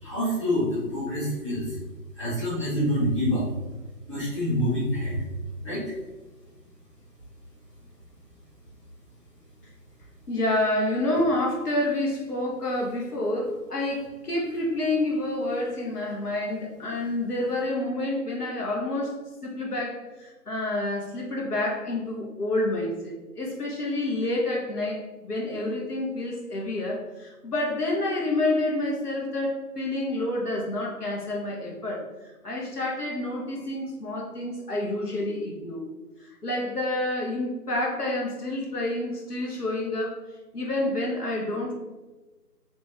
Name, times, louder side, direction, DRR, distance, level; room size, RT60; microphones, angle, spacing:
voice 1, 0.0-1.8 2.2-3.5 4.1-5.2 5.6-5.8, equal, 20° left, -13 dB, 1.2 m, -26 dB
voice 2, 10.3-19.2 19.4-35.8 36.2-40.2 40.5-41.7, left 1 dB, 70° left, -2 dB, 0.9 m, -28 dB
3.2 x 2.9 x 3.2 m, 1.2 s
figure-of-eight pair, 165°, 48 cm